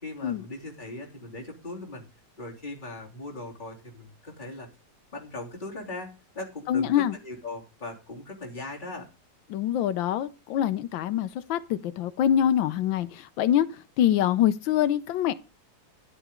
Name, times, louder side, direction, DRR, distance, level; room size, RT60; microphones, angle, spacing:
voice 1, 0.0-2.1 2.4-4.7 5.1-9.1, left 2 dB, 25° left, -3 dB, 3.4 m, -39 dB
voice 2, 6.7-7.2 9.5-15.3, left 10 dB, 85° left, 12 dB, 1.4 m, -25 dB
11.0 x 10.0 x 3.7 m, 0.31 s
omnidirectional pair, 2.0 m